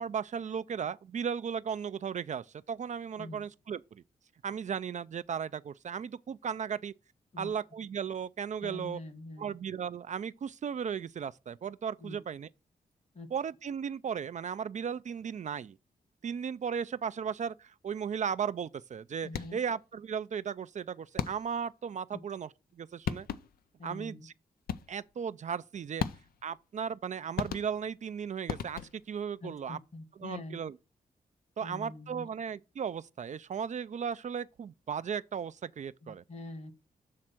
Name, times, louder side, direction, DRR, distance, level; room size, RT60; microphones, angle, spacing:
voice 1, 0.0-4.0 4.4-6.9 7.4-9.0 9.4-12.5 13.3-15.8 16.2-23.3 23.8-24.3 24.9-26.0 26.4-29.8 30.2-30.7 31.6-36.2, right 7 dB, 50° right, 0.4 m, -36 dB
voice 2, 8.6-9.5 12.0-12.2 13.1-13.3 19.2-19.6 22.1-22.2 23.8-24.3 29.4-30.6 31.6-32.3 36.0-36.7, left 2 dB, 45° left, 1.4 m, -44 dB
sound 1, 19.3-19.8 21.2-21.7 22.7-22.8 23.1-23.7 24.7-25.1 26.0-26.5 27.4-28.0 28.5-29.2, left 9 dB, 80° left, 0.5 m, -37 dB
7.5 x 3.3 x 5.9 m
cardioid pair, 55°, 15 cm